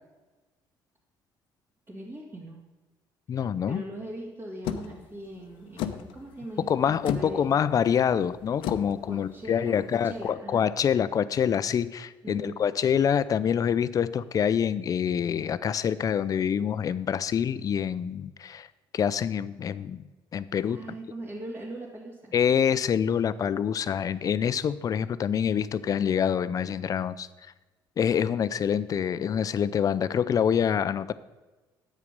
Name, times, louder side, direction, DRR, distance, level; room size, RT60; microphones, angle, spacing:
voice 1, 1.9-2.6 3.3-3.4 3.7-7.5 9.1-10.7 12.2-12.6 20.7-22.4, right 1 dB, 25° right, -6 dB, 2.4 m, -40 dB
voice 2, 3.3-3.8 6.6-18.7 18.9-20.0 20.3-20.8 22.3-27.3 28.0-31.1, left 8 dB, 45° left, 15 dB, 0.5 m, -26 dB
sound 1, 4.6-10.2, left 10 dB, 85° left, 0.8 m, -37 dB
9.8 x 8.4 x 5.3 m, 1.2 s
cardioid pair, 95°, 9 cm